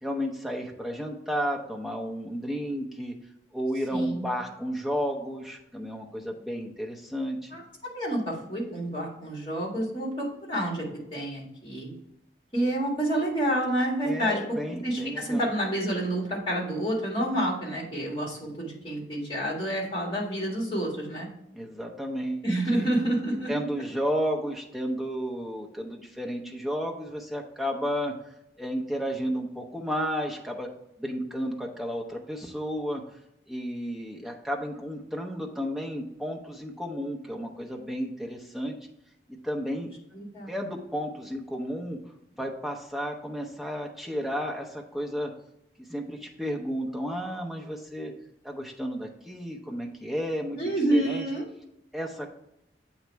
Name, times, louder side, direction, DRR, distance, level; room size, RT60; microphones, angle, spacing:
voice 1, 0.0-3.1 3.5-7.5 14.0-15.5 21.5-22.9 23.5-28.1 28.6-30.7 31.0-33.0 33.5-38.8 39.3-39.9 40.5-42.0 42.4-45.3 45.8-48.1 48.4-50.6 50.9-51.2 51.9-52.3, equal, ahead, -1 dB, 0.7 m, -32 dB
voice 2, 3.9-4.3 7.5-7.6 7.9-12.0 12.5-14.4 14.8-21.3 22.4-23.5 40.1-40.6 50.6-51.4, right 1 dB, 30° left, -3 dB, 1.7 m, -28 dB
7.9 x 3.1 x 4.5 m, 0.82 s
head